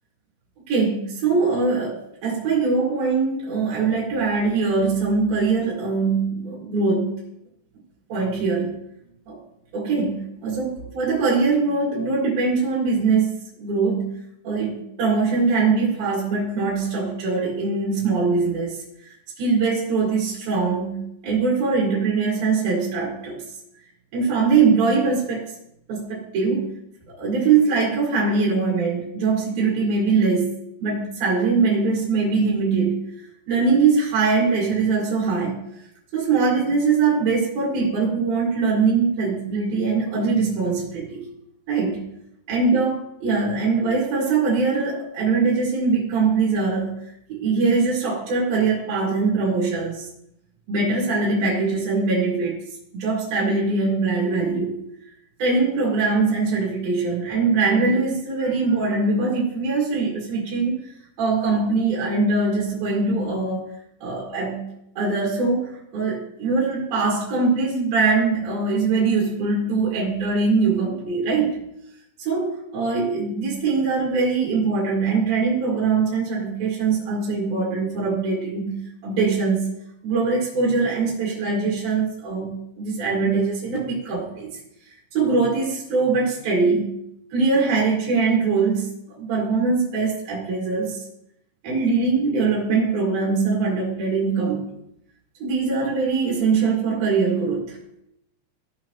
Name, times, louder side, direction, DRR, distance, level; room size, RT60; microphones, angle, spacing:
voice 1, 0.7-7.2 8.1-8.7 9.3-9.4 9.7-14.2 14.4-18.8 19.4-23.4 24.1-25.5 25.9-26.7 27.1-33.0 33.5-35.6 36.1-41.2 41.7-42.0 42.5-46.9 47.3-50.1 50.7-52.6 52.9-54.8 55.4-60.7 61.2-63.7 64.0-64.6 65.0-71.6 72.2-78.7 79.0-79.7 80.0-84.5 85.1-86.9 87.3-91.0 91.6-94.6 95.4-97.8, right 4 dB, 55° right, -4 dB, 3.4 m, -22 dB
16.0 x 5.6 x 3.0 m, 0.77 s
omnidirectional pair, 5.5 m